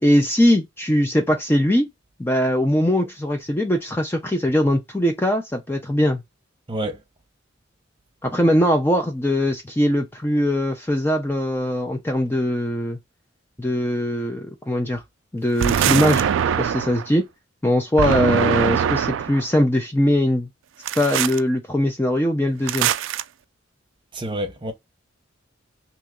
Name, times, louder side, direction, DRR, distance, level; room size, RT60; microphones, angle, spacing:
voice 1, 0.0-1.9 2.2-6.2 8.2-13.0 13.6-15.0 15.3-16.3 16.6-17.3 17.6-20.5 21.0-22.9, left 1 dB, 10° left, 0.4 m, -21 dB
voice 2, 6.7-7.0 24.1-24.7, right 1 dB, 25° right, 0.9 m, -28 dB
sound 1, 15.6-17.1 18.0-19.4 20.9-21.4 22.7-23.2, right 8 dB, 75° right, 0.3 m, -22 dB
2.9 x 2.6 x 3.6 m
head